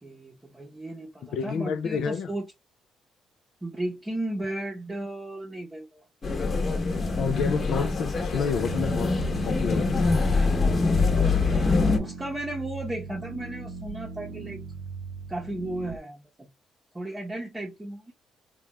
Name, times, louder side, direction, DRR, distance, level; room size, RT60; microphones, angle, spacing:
voice 1, 0.0-2.5 3.6-6.0 10.4-14.6 15.3-16.5 16.9-18.1, right 1 dB, 15° right, 0.8 m, -35 dB
voice 2, 1.3-2.3 7.2-9.1 9.5-9.9, left 6 dB, 75° left, 0.4 m, -29 dB
sound 1, 6.2-12.0, left 3 dB, 40° left, 1.0 m, -24 dB
sound 2, 8.5-16.0, right 5 dB, 80° right, 0.4 m, -39 dB
3.3 x 2.3 x 2.9 m
cardioid pair, 90°, 0 cm